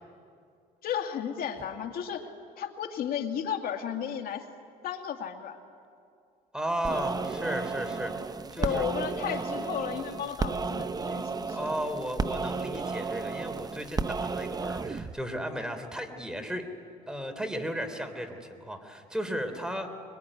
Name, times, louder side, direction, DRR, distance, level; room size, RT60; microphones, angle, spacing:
voice 1, 0.8-2.3 2.6-4.5 4.8-5.6 8.6-11.7, left 8 dB, 60° left, 4 dB, 2.4 m, -34 dB
voice 2, 6.5-8.9 11.5-16.6 17.1-19.9, equal, 5° right, 7 dB, 3.3 m, -35 dB
sound 1, 6.8-15.2, right 4 dB, 25° right, 0.8 m, -33 dB
23.5 x 23.5 x 10.0 m, 2.3 s
cardioid pair, 110°, 17 cm